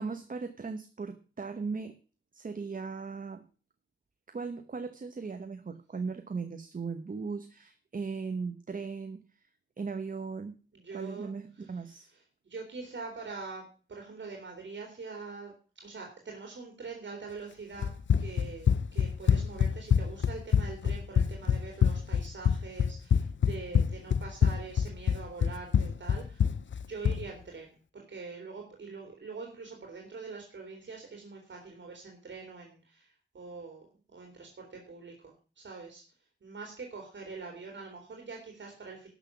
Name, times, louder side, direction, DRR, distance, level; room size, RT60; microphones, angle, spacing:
voice 1, 0.0-2.0 2.3-3.4 4.3-9.4 9.8-10.6 10.9-12.1, right 4 dB, 45° right, 8 dB, 1.0 m, -38 dB
voice 2, 10.7-11.3 11.6-11.7 12.4-15.5 15.8-26.4 26.9-36.0 36.4-39.1, right 4 dB, 80° right, 1 dB, 2.9 m, -44 dB
Run, 17.8-27.2, left 7 dB, 85° left, 0.6 m, -26 dB
13.0 x 6.2 x 7.1 m, 0.38 s
wide cardioid pair, 125°, 19 cm